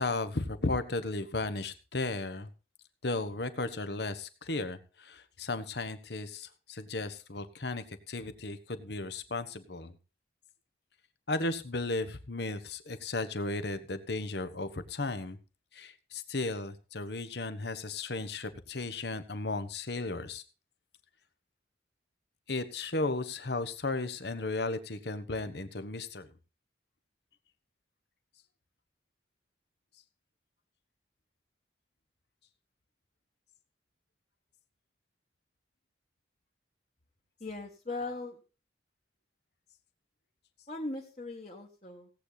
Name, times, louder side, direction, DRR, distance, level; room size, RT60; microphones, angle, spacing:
voice 1, 0.0-2.5 3.0-9.9 11.3-15.4 15.7-20.4 22.5-26.3, left 2 dB, 60° left, 12 dB, 1.2 m, -35 dB
voice 2, 37.4-38.4 40.7-42.1, left 2 dB, 35° left, 0 dB, 1.6 m, -39 dB
17.5 x 8.5 x 4.1 m, 0.34 s
head